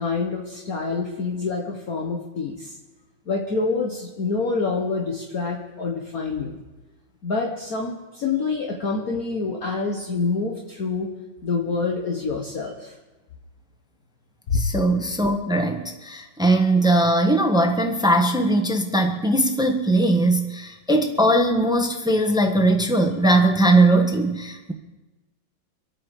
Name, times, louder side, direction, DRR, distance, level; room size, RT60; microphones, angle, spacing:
voice 1, 0.0-2.8 3.3-6.6 7.2-11.1 11.4-12.9 14.5-14.6, left 4 dB, 50° left, 0 dB, 1.8 m, -26 dB
voice 2, 14.5-24.7, right 1 dB, 5° right, 4 dB, 1.0 m, -20 dB
25.5 x 8.8 x 5.0 m, 1.2 s
omnidirectional pair, 2.2 m